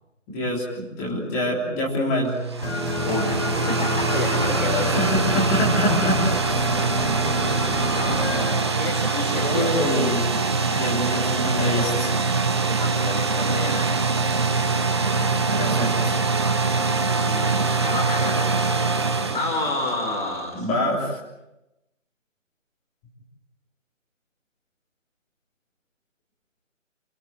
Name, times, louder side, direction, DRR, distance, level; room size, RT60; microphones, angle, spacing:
voice 1, 0.3-2.3 4.8-6.2 6.5-6.7 9.4-10.3 10.6-12.2 15.1-16.2 20.5-21.2, left 1 dB, 10° left, -3 dB, 3.4 m, -26 dB
sound 1, 2.2-20.4, right 4 dB, 20° right, 1.0 m, -23 dB
sound 2, 2.6-8.5, left 2 dB, 60° left, 5.7 m, -28 dB
voice 2, 3.0-3.4 3.8-4.9 7.9-9.8 12.6-14.1 17.2-18.6 19.3-20.7, left 2 dB, 40° left, 0 dB, 5.0 m, -30 dB
27.5 x 21.0 x 7.4 m, 0.92 s
figure-of-eight pair, 165°, 39 cm